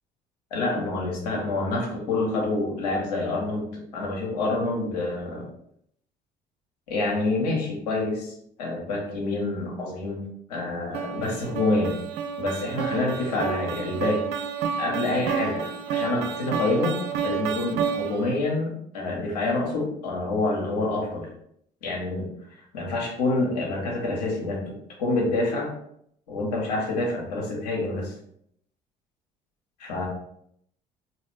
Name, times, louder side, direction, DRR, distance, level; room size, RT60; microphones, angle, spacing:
voice 1, 0.5-3.6 3.9-5.5 6.9-8.3 8.6-12.0 12.4-14.2 14.8-21.3 21.8-22.3 22.7-25.7 26.3-28.1 29.8-30.1, left 2 dB, 75° left, -2 dB, 1.1 m, -27 dB
sound 1, 10.9-18.4, right 7 dB, 55° right, 0.5 m, -30 dB
4.0 x 2.9 x 3.2 m, 0.72 s
figure-of-eight pair, 55°, 21 cm